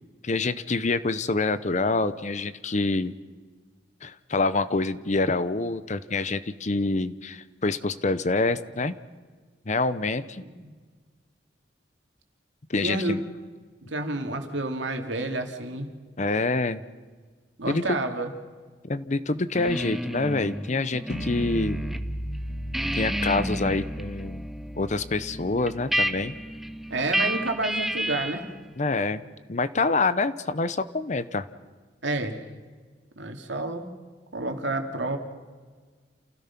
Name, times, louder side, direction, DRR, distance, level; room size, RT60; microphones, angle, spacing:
voice 1, 0.2-3.1 4.0-9.0 9.7-10.4 12.7-13.2 16.2-16.8 17.7-18.0 18.8-21.8 22.9-24.5 24.8-26.3 28.8-29.2 29.5-31.5, left 3 dB, 40° left, 14 dB, 0.8 m, -26 dB
voice 2, 12.8-13.1 13.9-15.9 17.6-18.3 26.9-28.5 32.0-32.4 33.2-33.9 34.3-35.2, right 2 dB, 80° right, 4 dB, 2.5 m, -29 dB
sound 1, 19.5-22.0 22.3-28.5, equal, ahead, 0.6 m, -31 dB
sound 2, 21.1-27.1, equal, 60° left, 1.9 m, -36 dB
28.5 x 16.5 x 5.9 m, 1.5 s
head